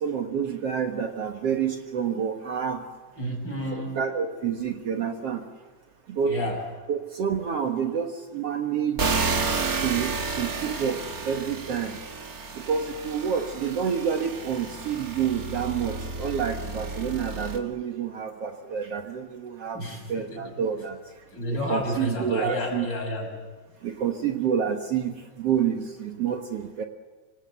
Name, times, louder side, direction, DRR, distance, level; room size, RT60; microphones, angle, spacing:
voice 1, 0.0-2.8 3.7-5.4 6.1-6.4 6.9-9.2 9.8-12.0 12.6-19.8 20.1-21.0 21.7-22.9 23.8-25.1 25.4-26.9, right 7 dB, 60° right, 4 dB, 2.3 m, -28 dB
voice 2, 3.2-4.0 6.2-6.6 19.7-20.5 21.3-23.3, equal, 35° left, 3 dB, 6.5 m, -30 dB
sound 1, 9.0-17.6, right 4 dB, 35° right, 2.1 m, -31 dB
26.0 x 25.5 x 8.1 m, 1.2 s
omnidirectional pair, 3.4 m